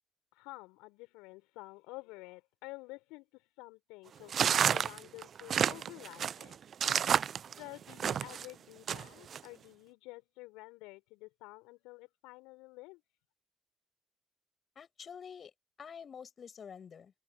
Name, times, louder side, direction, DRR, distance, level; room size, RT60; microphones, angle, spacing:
voice 1, 0.3-6.6 7.6-13.0, left 23 dB, 75° left, 4.3 m, -50 dB
sound 1, 4.3-8.5 8.9-9.4, right 8 dB, 55° right, 0.5 m, -30 dB
voice 2, 14.8-15.5 15.8-17.1, left 7 dB, 50° left, 7.7 m, -48 dB
open air
figure-of-eight pair, 40°, 0 cm